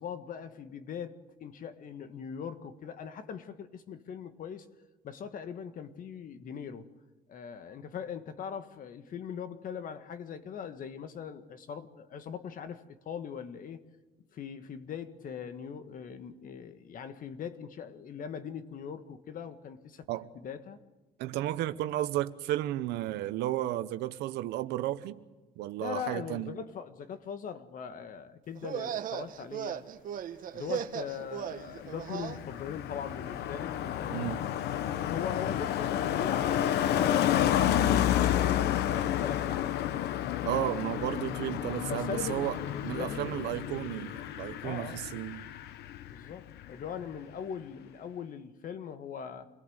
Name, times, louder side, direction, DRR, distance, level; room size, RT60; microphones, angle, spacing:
voice 1, 0.0-4.7 5.0-6.9 7.3-13.8 14.3-20.0 20.3-20.8 25.8-29.9 30.5-34.3 34.9-38.0 38.5-40.1 41.9-43.5 44.2-44.3 44.6-45.0 46.1-49.5, left 7 dB, 55° left, 1.7 m, -41 dB
voice 2, 21.2-25.2 25.6-26.5 34.1-34.4 40.4-42.5 42.8-45.4, right 14 dB, 90° right, 1.0 m, -33 dB
sound 1, 28.6-32.4, right 9 dB, 55° right, 1.2 m, -37 dB
Car passing by, 31.5-46.3 46.6-46.9, left 11 dB, 75° left, 1.0 m, -30 dB
27.5 x 18.5 x 8.0 m
cardioid pair, 110°, 17 cm